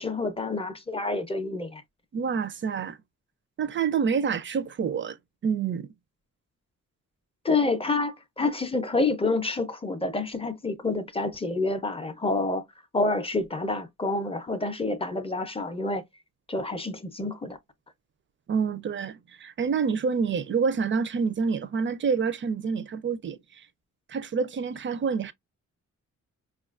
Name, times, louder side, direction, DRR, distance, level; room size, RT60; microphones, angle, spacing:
voice 1, 0.0-1.8 7.4-12.6 12.9-16.0 16.5-17.6, left 3 dB, 20° left, 0.5 m, -28 dB
voice 2, 2.1-3.0 3.6-5.2 5.4-5.9 18.5-23.4 24.1-25.3, right 6 dB, 40° right, 0.4 m, -27 dB
4.8 x 2.3 x 2.4 m
wide cardioid pair, 145°, 31 cm